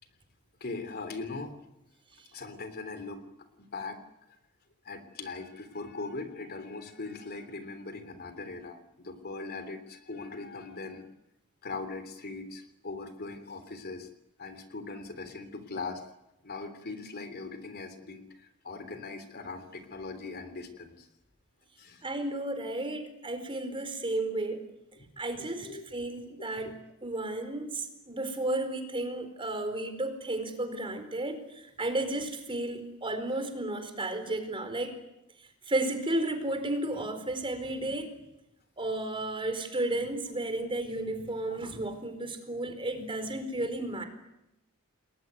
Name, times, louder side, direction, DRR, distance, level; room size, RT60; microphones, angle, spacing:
voice 1, 0.6-1.5 2.3-3.2 3.7-4.0 4.8-11.1 11.6-14.1 14.4-16.0 16.4-21.1 21.8-22.1 25.0-25.1 25.6-25.8 26.4-26.8 41.5-41.6, left 3 dB, 45° left, 9 dB, 3.3 m, -40 dB
voice 2, 22.0-24.6 25.2-26.7 27.0-34.9 35.7-38.1 38.8-44.0, right 1 dB, 25° right, 7 dB, 4.4 m, -33 dB
30.0 x 21.0 x 9.5 m, 0.89 s
head